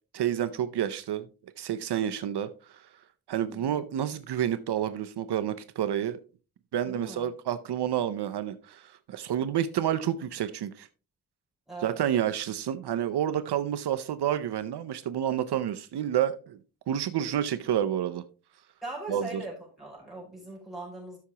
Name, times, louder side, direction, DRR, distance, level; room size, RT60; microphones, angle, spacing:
voice 1, 0.1-1.3 1.6-2.9 3.3-6.2 6.7-10.9 11.8-16.6 16.9-18.2 19.1-19.4, right 10 dB, 80° right, 10 dB, 0.6 m, -29 dB
voice 2, 3.4-3.9 6.9-7.3 11.7-12.1 18.8-21.2, right 2 dB, ahead, -5 dB, 5.0 m, -41 dB
13.0 x 5.8 x 2.9 m, 0.35 s
wide cardioid pair, 160°, 39 cm